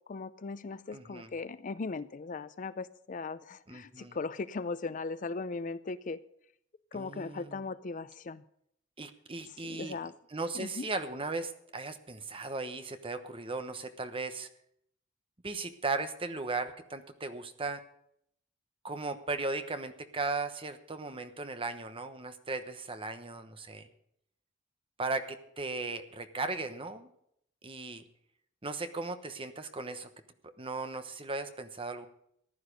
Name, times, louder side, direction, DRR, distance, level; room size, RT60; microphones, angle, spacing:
voice 1, 0.1-6.2 6.9-8.4 9.6-10.1 10.5-10.9, left 3 dB, 40° left, 15 dB, 0.5 m, -38 dB
voice 2, 0.9-1.3 3.7-4.2 6.9-7.7 9.0-10.0 10.3-14.5 15.4-17.8 18.8-23.9 25.0-27.1 27.6-28.0 28.6-30.1 30.4-32.1, right 3 dB, 30° right, 9 dB, 1.0 m, -37 dB
15.0 x 10.5 x 5.2 m, 0.71 s
head